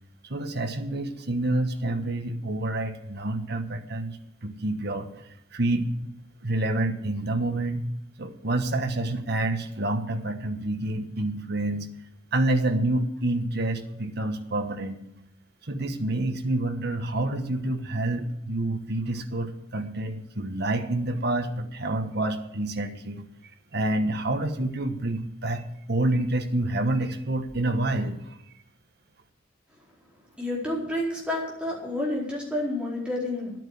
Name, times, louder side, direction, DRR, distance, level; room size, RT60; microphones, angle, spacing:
voice 1, 0.3-5.1 5.5-5.9 6.4-7.9 8.2-11.9 12.3-15.0 15.7-23.2 23.7-25.6 25.9-28.4, right 2 dB, 55° right, 7 dB, 1.3 m, -28 dB
voice 2, 30.4-33.5, left 1 dB, 5° right, -5 dB, 4.5 m, -29 dB
10.5 x 9.1 x 8.1 m, 0.79 s
head